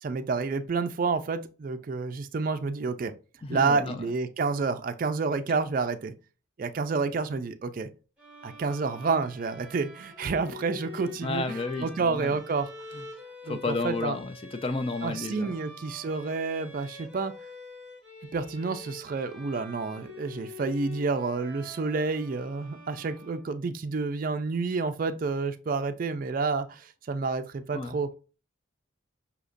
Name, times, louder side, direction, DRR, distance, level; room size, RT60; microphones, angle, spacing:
voice 1, 0.0-3.1 3.5-6.1 6.6-7.9 8.4-12.7 13.5-14.2 15.0-17.3 18.3-28.1, right 4 dB, 45° right, 0.4 m, -29 dB
voice 2, 3.4-4.0 11.2-12.4 12.9-13.0 13.4-15.5 27.7-28.0, left 3 dB, 25° left, 0.4 m, -32 dB
sound 1, 8.2-23.8, left 2 dB, 5° right, 1.2 m, -46 dB
6.4 x 2.8 x 2.5 m
head